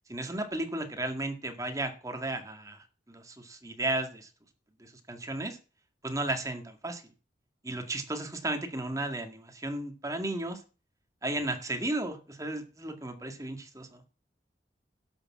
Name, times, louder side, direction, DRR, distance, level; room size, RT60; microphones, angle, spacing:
voice 1, 0.1-4.3 4.8-5.6 6.0-7.0 7.6-10.6 11.2-14.0, right 2 dB, 20° right, 6 dB, 1.9 m, -34 dB
12.0 x 7.0 x 7.3 m, 0.36 s
head